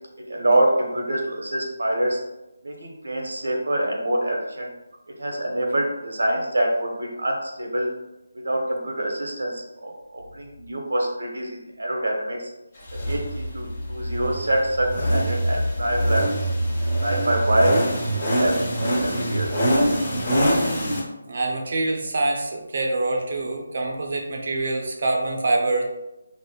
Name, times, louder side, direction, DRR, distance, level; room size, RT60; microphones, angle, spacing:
voice 1, 0.3-2.2 2.6-4.7 5.2-7.9 8.3-12.5 12.9-16.2 17.0-17.8 18.1-19.5, right 1 dB, 80° right, 0 dB, 0.9 m, -25 dB
sound 1, 12.9-21.0, equal, 25° left, 1.1 m, -24 dB
voice 2, 21.2-25.8, right 2 dB, 45° right, 1 dB, 0.6 m, -25 dB
5.0 x 2.1 x 2.3 m, 0.98 s
figure-of-eight pair, 170°, 0 cm